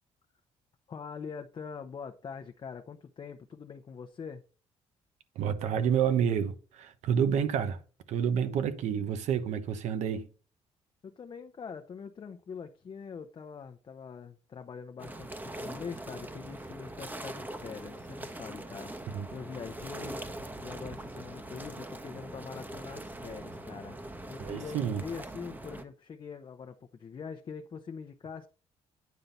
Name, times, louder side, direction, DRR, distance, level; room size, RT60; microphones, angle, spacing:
voice 1, 0.9-4.4 11.0-18.9 19.3-20.2 20.6-24.0 24.3-28.5, left 6 dB, 45° left, 0.8 m, -43 dB
voice 2, 5.4-7.8 8.1-10.3 19.1-19.3 24.4-25.0, right 8 dB, 80° right, 1.0 m, -29 dB
sound 1, 15.0-25.8, right 1 dB, 15° right, 1.0 m, -42 dB
9.5 x 3.8 x 5.5 m
cardioid pair, 90°, 12 cm